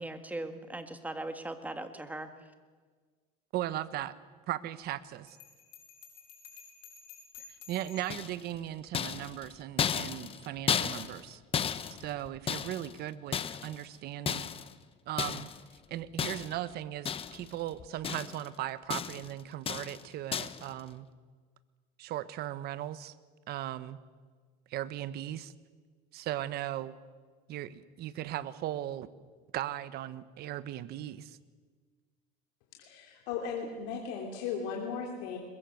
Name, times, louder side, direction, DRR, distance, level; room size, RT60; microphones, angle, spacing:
voice 1, 0.0-2.3, right 2 dB, 5° right, 7 dB, 1.9 m, -39 dB
voice 2, 3.5-4.1 4.5-5.4 7.7-11.4 12.0-14.5 15.1-15.5 15.9-21.1 22.0-23.1 23.5-24.0 24.7-25.5 26.1-26.9 27.5-29.1 29.5-31.4, right 13 dB, 50° right, 14 dB, 1.2 m, -37 dB
Bell, 5.3-8.2, left 6 dB, 90° left, 7.1 m, -52 dB
sound 1, 8.1-8.5 8.9-11.3 11.5-13.0 13.3-13.8 14.3-14.7 15.2-15.6 16.2-16.7 17.0-17.5 17.8-18.5 18.9-19.3 19.7-20.0 20.3-20.7, left 8 dB, 25° left, 0.9 m, -34 dB
voice 3, 32.8-35.4, left 6 dB, 70° left, 0 dB, 3.4 m, -36 dB
21.5 x 21.5 x 7.9 m, 1.5 s
supercardioid pair, 130°, 21 cm